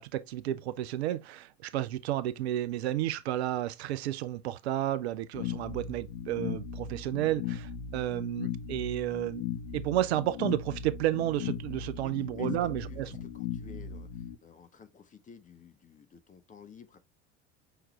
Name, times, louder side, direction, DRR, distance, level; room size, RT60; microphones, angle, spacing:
voice 1, 0.0-9.5 9.7-13.1, right 13 dB, 60° right, 0.5 m, -32 dB
sound 1, 5.3-14.3, left 8 dB, 55° left, 0.8 m, -38 dB
voice 2, 12.0-17.0, left 6 dB, 20° left, 0.9 m, -53 dB
5.8 x 3.1 x 2.9 m
figure-of-eight pair, 70°, 36 cm